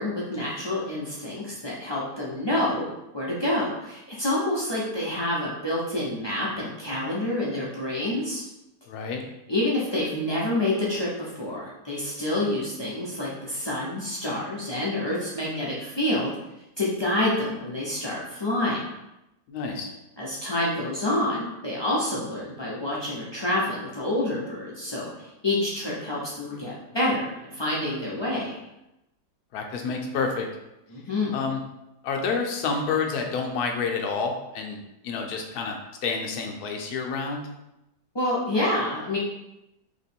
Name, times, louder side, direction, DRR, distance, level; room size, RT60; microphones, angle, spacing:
voice 1, 0.0-2.8 3.1-8.4 9.5-16.3 16.8-18.8 20.2-28.6 30.9-31.3 38.1-39.2, left 1 dB, 40° left, -7 dB, 0.3 m, -28 dB
voice 2, 8.9-9.2 19.5-19.9 29.5-30.5 31.3-31.6 32.0-37.5, left 5 dB, 75° left, 2 dB, 1.1 m, -29 dB
3.0 x 2.9 x 4.3 m, 0.90 s
omnidirectional pair, 1.7 m